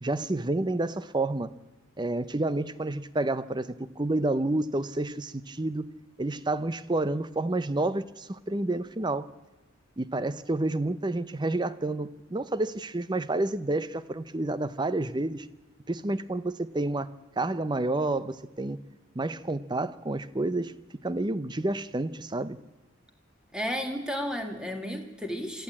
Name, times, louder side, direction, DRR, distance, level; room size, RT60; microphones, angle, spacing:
voice 1, 0.0-1.5 2.0-5.9 6.2-9.3 10.0-15.5 15.9-17.1 17.4-18.8 19.1-20.7 21.0-22.6, right 2 dB, 20° right, 0.7 m, -29 dB
voice 2, 23.5-25.6, equal, 5° right, 2.2 m, -33 dB
25.0 x 14.0 x 8.6 m
head